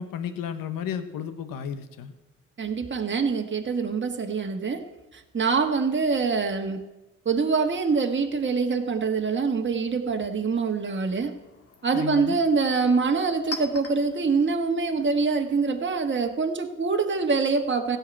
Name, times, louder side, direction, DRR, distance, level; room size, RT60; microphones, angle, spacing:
voice 1, 0.0-2.1 11.9-12.4, left 8 dB, 85° left, 11 dB, 1.1 m, -33 dB
voice 2, 2.6-4.8 5.1-6.8 7.2-11.4 11.8-18.0, right 4 dB, 35° right, 4 dB, 1.5 m, -25 dB
Chink clink, 10.6-16.1, left 2 dB, 45° left, 1.9 m, -44 dB
15.5 x 5.7 x 8.7 m, 1.1 s
cardioid pair, 65°, 33 cm